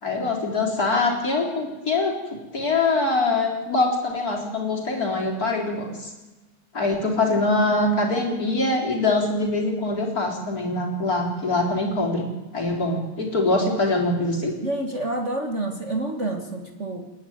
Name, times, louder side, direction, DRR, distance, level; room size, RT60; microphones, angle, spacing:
voice 1, 0.0-6.1 6.7-12.3 12.5-14.5, left 2 dB, 40° left, 1 dB, 4.4 m, -23 dB
voice 2, 14.6-17.1, right 2 dB, 35° right, 4 dB, 1.8 m, -28 dB
28.5 x 11.0 x 9.4 m, 1.2 s
omnidirectional pair, 2.3 m